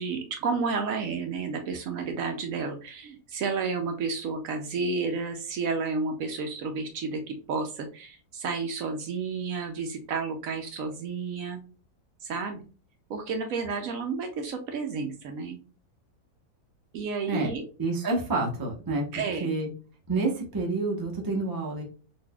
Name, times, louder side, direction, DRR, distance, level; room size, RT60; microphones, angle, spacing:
voice 1, 0.0-11.6 12.2-12.7 13.1-15.6 16.9-17.6 19.1-19.5, right 4 dB, 70° right, 5 dB, 0.9 m, -31 dB
voice 2, 17.8-19.0 19.4-19.7 20.1-21.8, right 3 dB, 20° right, 0 dB, 0.5 m, -28 dB
4.0 x 2.7 x 2.2 m, 0.36 s
omnidirectional pair, 1.7 m